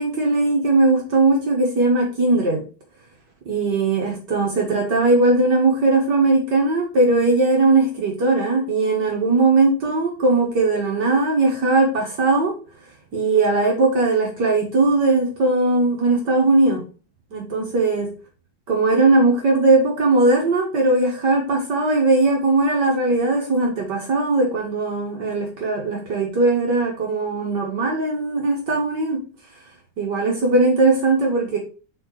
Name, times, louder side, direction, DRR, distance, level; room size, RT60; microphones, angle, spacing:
voice 1, 0.0-2.6 3.5-12.5 13.1-16.8 17.3-18.1 18.7-29.2 30.0-31.6, right 2 dB, 60° right, -1 dB, 2.1 m, -19 dB
5.6 x 4.4 x 4.8 m, 0.36 s
omnidirectional pair, 2.2 m